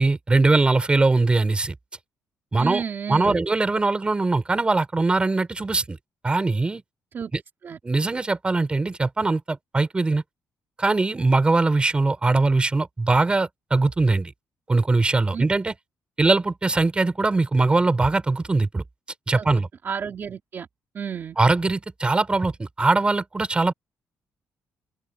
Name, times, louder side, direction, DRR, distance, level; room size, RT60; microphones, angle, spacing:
voice 1, 0.0-1.7 2.5-2.8 3.1-6.0 6.2-6.8 7.3-7.4 7.8-10.2 10.8-14.3 14.7-15.7 16.2-18.8 19.3-19.7 21.4-23.7, right 3 dB, 20° right, 2.9 m, -21 dB
voice 2, 2.6-3.4 7.1-7.3 7.6-7.8 15.3-15.4 19.4-19.5 19.8-20.7 20.9-21.4, right 7 dB, 45° right, 2.7 m, -31 dB
open air
cardioid pair, 120°, 5 cm